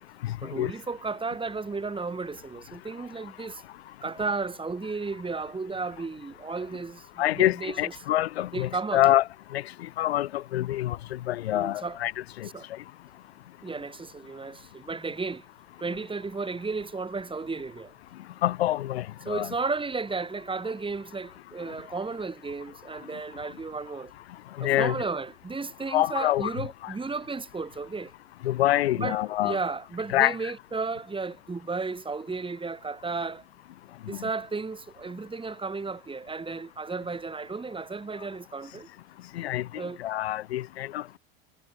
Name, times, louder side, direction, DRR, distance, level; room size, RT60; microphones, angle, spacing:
voice 1, 0.4-3.6 4.0-7.1 7.3-7.9 8.5-9.0 11.5-12.0 12.5-12.7 13.6-15.4 15.8-17.9 19.2-24.1 24.6-28.1 28.9-33.4 34.1-38.9 39.7-40.0, right 4 dB, 15° right, 5.0 m, -34 dB
voice 2, 7.2-9.2 9.5-9.6 10.0-11.0 11.3-12.1 18.4-19.5 24.6-25.0 25.9-26.5 26.8-26.9 28.4-29.6 30.1-30.3 39.4-39.6 40.0-41.2, left 14 dB, 80° left, 3.8 m, -25 dB
hypercardioid pair, 85°, 31 cm